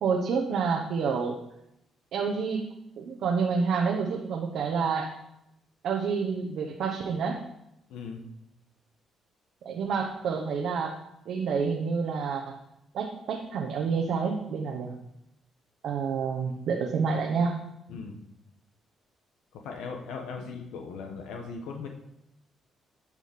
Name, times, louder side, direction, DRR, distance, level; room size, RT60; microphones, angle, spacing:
voice 1, 0.0-1.4 2.1-2.7 3.0-5.1 5.8-7.4 9.6-11.0 11.3-12.6 12.9-15.0 15.8-17.6, right 5 dB, 75° right, 1 dB, 1.0 m, -28 dB
voice 2, 7.9-8.2 17.9-18.2 19.6-21.9, left 5 dB, 90° left, 3 dB, 1.1 m, -38 dB
10.5 x 5.0 x 5.2 m, 0.82 s
cardioid pair, 90°, 0 cm